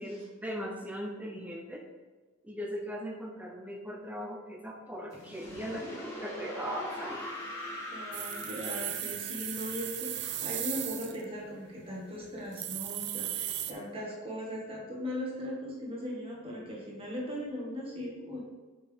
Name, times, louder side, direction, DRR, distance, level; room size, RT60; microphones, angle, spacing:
voice 1, 0.0-1.9 2.4-7.2, equal, 5° right, 1 dB, 0.6 m, -39 dB
sound 1, 5.1-12.0, left 1 dB, 15° left, 2.2 m, -42 dB
voice 2, 7.9-18.4, equal, 25° right, -3 dB, 1.8 m, -39 dB
sound 2, 8.1-11.2 11.8-11.9 12.2-12.3 12.5-13.7, right 11 dB, 55° right, 0.6 m, -36 dB
7.5 x 5.9 x 3.6 m, 1.4 s
head